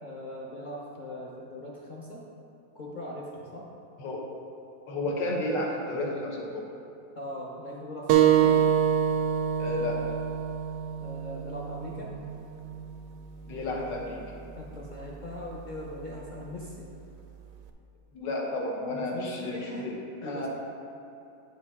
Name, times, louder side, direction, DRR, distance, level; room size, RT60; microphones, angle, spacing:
voice 1, 0.0-2.2 2.7-3.7 7.2-8.6 11.0-12.1 14.6-16.9 18.9-19.9 20.2-20.5, left 1 dB, 60° left, -4 dB, 0.5 m, -40 dB
voice 2, 4.9-6.7 9.6-10.1 13.5-14.2 18.1-20.0 20.2-20.5, left 2 dB, 85° left, -2 dB, 1.8 m, -32 dB
sound 1, 8.1-13.2, right 9 dB, 75° right, 0.8 m, -26 dB
10.0 x 5.2 x 3.6 m, 2.8 s
omnidirectional pair, 1.9 m